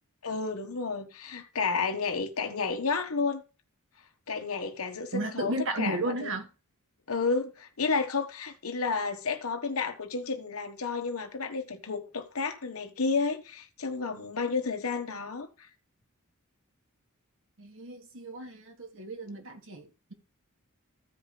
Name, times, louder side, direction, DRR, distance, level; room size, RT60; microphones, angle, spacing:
voice 1, 0.2-3.4 4.3-6.3 7.1-15.7, left 4 dB, 70° left, 1.2 m, -31 dB
voice 2, 5.1-6.5 17.6-20.1, right 2 dB, 65° right, 1.6 m, -34 dB
14.5 x 5.0 x 3.3 m
head